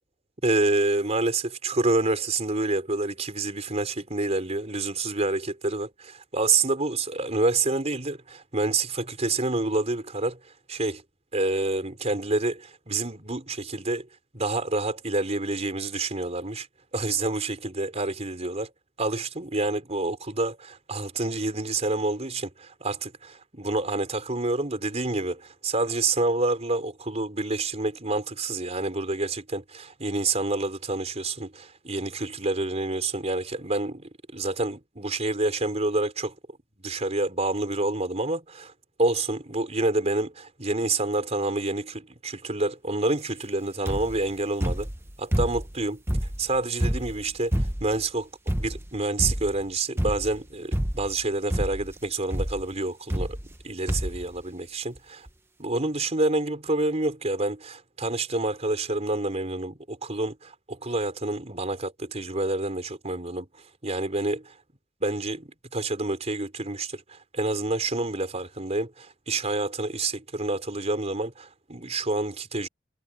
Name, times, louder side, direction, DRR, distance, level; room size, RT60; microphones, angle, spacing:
voice 1, 0.4-10.4 10.7-11.0 11.3-14.1 14.3-16.7 16.9-18.7 19.0-36.4 36.8-38.7 39.0-44.9 45.2-46.0 46.4-48.3 48.6-53.4 53.6-55.3 55.6-63.5 63.8-64.5 65.0-72.7, right 2 dB, 35° right, 4.5 m, -28 dB
sound 1, 43.9-44.2 44.6-45.7 46.1-48.0 48.5-48.9 49.2-49.6 50.0-50.4 50.7-51.2 51.5-51.9 52.3-52.6 53.1-53.6 53.9-54.2 55.0-55.1 55.3-55.4, equal, 15° right, 1.3 m, -28 dB
head